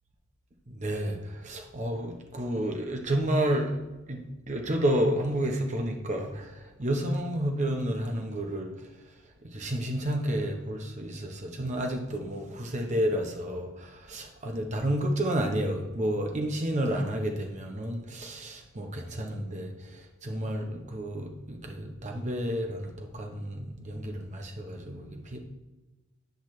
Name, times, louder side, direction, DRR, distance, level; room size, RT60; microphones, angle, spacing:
voice 1, 0.7-3.8 4.1-8.7 9.4-25.4, right 1 dB, 35° right, 2 dB, 0.8 m, -31 dB
10.5 x 6.0 x 3.1 m, 1.1 s
head